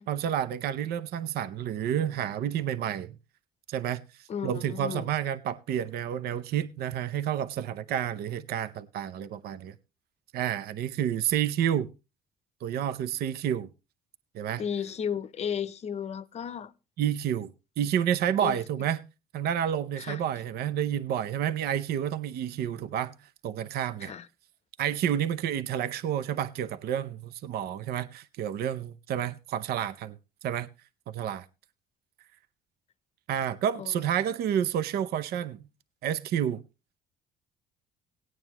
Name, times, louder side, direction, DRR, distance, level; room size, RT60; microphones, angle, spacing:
voice 1, 0.1-3.2 3.7-9.7 10.3-11.9 12.6-13.7 14.3-14.6 17.0-17.5 17.8-19.0 19.3-23.1 23.4-24.1 24.8-30.2 30.4-30.7 31.1-31.5 33.3-35.6 36.0-36.6, right 9 dB, 70° right, 0.6 m, -30 dB
voice 2, 4.3-5.1 14.6-16.7 18.4-18.6 20.0-20.2 24.0-24.3 33.8-34.0, left 8 dB, 40° left, 0.7 m, -34 dB
18.0 x 9.2 x 2.9 m
cardioid pair, 110°, 17 cm